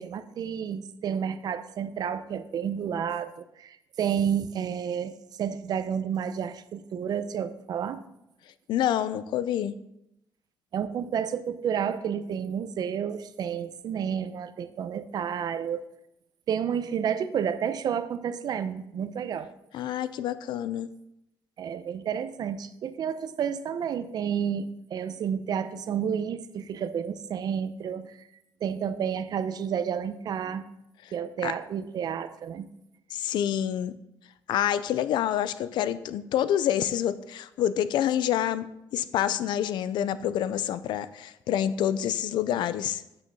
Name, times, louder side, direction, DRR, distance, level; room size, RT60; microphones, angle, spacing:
voice 1, 0.0-8.0 10.7-15.8 16.5-19.5 21.6-28.3 28.6-30.6 31.1-32.7, right 8 dB, 60° right, 0.7 m, -30 dB
voice 2, 8.7-9.8 19.7-20.9 31.4-31.5 33.1-33.9 34.5-43.0, left 10 dB, 85° left, 0.5 m, -27 dB
8.6 x 6.6 x 5.4 m
cardioid pair, 115°, 8 cm